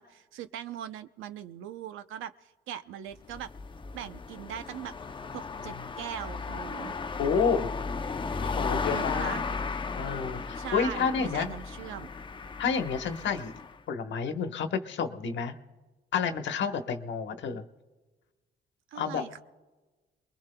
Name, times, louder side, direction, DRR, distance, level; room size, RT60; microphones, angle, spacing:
voice 1, 0.0-3.5 3.9-4.9 5.3-6.9 8.9-9.4 10.5-12.1 18.9-19.4, right 10 dB, 85° right, 10 dB, 0.7 m, -40 dB
sound 1, 3.1-13.8, left 4 dB, 25° left, 0.6 m, -35 dB
voice 2, 7.2-7.7 8.4-9.4 10.0-11.5 12.6-13.5 13.9-15.5 16.1-17.6 18.9-19.3, left 6 dB, 65° left, 6 dB, 1.2 m, -30 dB
28.0 x 21.5 x 2.3 m, 1.2 s
cardioid pair, 90°, 20 cm